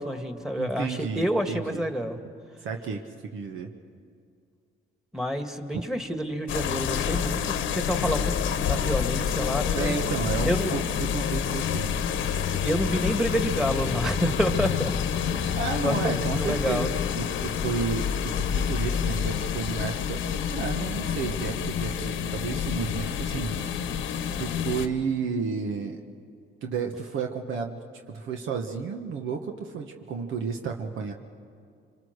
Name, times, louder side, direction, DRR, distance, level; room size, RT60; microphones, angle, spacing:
voice 1, 0.0-2.2 5.1-9.9 10.5-10.7 12.6-14.9 15.3-16.9, equal, 5° right, 6 dB, 1.8 m, -28 dB
voice 2, 0.6-1.8 2.6-3.7 9.7-12.0 15.6-20.2 20.5-23.9 24.4-26.0 26.6-31.1, right 5 dB, 80° right, 3 dB, 1.4 m, -32 dB
sound 1, 6.5-24.9, left 8 dB, 80° left, 1.2 m, -28 dB
25.5 x 25.0 x 6.6 m, 2.3 s
cardioid pair, 90°, 20 cm